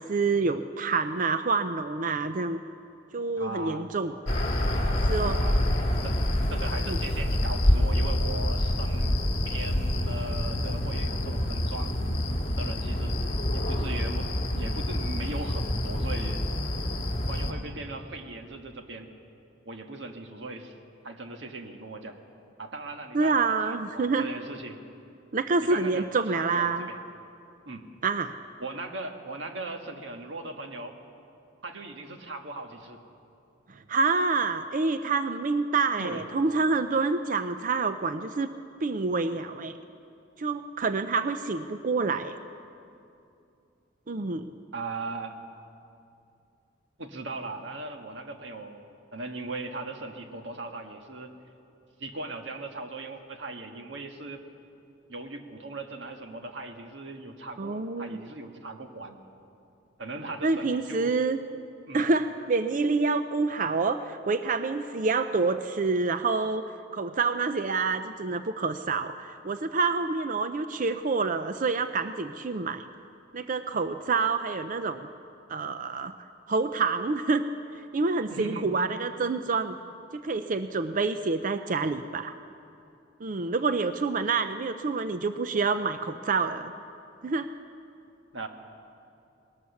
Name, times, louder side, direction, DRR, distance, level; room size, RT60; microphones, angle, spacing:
voice 1, 0.0-2.6 3.1-4.1 5.1-5.4 6.8-7.0 23.1-24.3 25.3-26.9 28.0-28.3 33.7-38.5 38.8-39.8 40.4-42.3 44.1-44.5 57.6-58.2 60.4-61.4 61.9-72.9 73.3-75.1 75.5-76.1 76.5-77.4 77.9-79.8 80.1-82.3 83.2-86.7 87.2-87.5, right 4 dB, 45° right, 10 dB, 0.5 m, -27 dB
voice 2, 3.4-3.9 5.3-5.6 6.0-6.2 6.5-9.2 9.4-12.0 12.6-13.2 13.5-16.4 17.3-19.1 19.6-20.8 21.0-22.2 22.6-24.8 25.6-27.0 27.7-27.9 28.6-31.0 31.6-33.0 36.0-36.2 44.7-45.4 47.0-48.9 49.1-51.3 52.0-54.4 55.1-59.2 60.0-61.1 61.9-62.1 78.3-78.7 88.3-88.5, right 2 dB, 70° right, 5 dB, 1.6 m, -39 dB
sound 1, 4.3-17.5, left 1 dB, 35° left, 1.9 m, -27 dB
20.0 x 18.5 x 7.1 m, 2.6 s
head